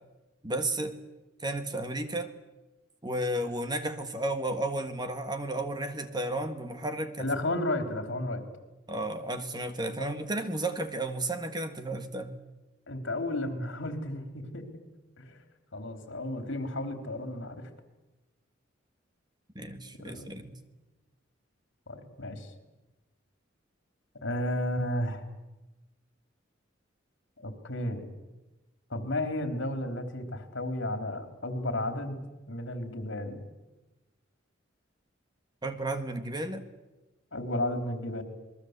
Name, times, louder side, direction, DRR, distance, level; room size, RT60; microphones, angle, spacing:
voice 1, 0.4-1.0 1.4-2.3 3.0-7.3 8.9-12.4 19.6-20.6 35.6-36.6, right 1 dB, 20° right, 9 dB, 1.7 m, -33 dB
voice 2, 7.2-8.5 10.0-10.1 12.9-14.8 15.2-15.4 15.7-17.7 20.0-20.7 21.9-22.5 24.2-25.2 27.4-28.1 28.9-32.2 32.5-33.4 37.3-38.2, left 1 dB, 65° left, 7 dB, 3.6 m, -33 dB
27.5 x 21.5 x 8.2 m, 1.1 s
head